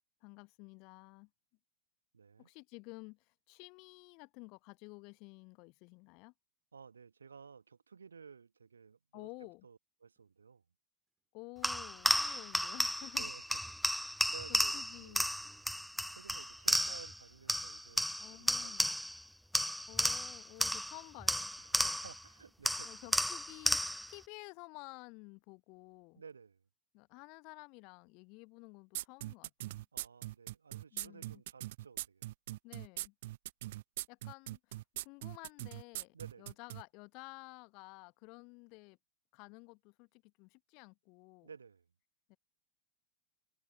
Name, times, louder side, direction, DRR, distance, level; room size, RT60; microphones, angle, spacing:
voice 1, 0.2-1.3 2.4-6.3 9.1-9.7 11.3-13.3 14.5-15.2 18.2-19.0 19.9-21.5 22.8-26.2 26.9-29.9 30.9-31.4 32.6-33.1 34.1-39.0 39.3-41.5 42.3-42.4, left 29 dB, 45° left, 1.3 m, -53 dB
voice 2, 2.1-2.5 6.7-9.3 9.6-10.6 13.1-13.6 13.9-15.3 16.1-18.8 21.6-23.0 26.1-26.6 29.9-32.3 36.1-36.5 41.4-41.9, right 6 dB, 75° right, 1.7 m, -55 dB
sound 1, 10.2-10.4 11.2-11.3 11.6-11.7 13.0-13.1 13.8-16.0 16.5-16.6 17.4-17.5 17.9-18.2 18.9-19.0 20.3-21.1 22.1-22.3, right 6 dB, 15° right, 6.3 m, -68 dB
sound 2, 11.6-17.2 17.5-19.2 19.5-22.2 22.7-24.1, equal, ahead, 0.3 m, -33 dB
sound 3, 28.9-36.8, right 16 dB, 55° right, 0.5 m, -41 dB
figure-of-eight pair, 90°, 0 cm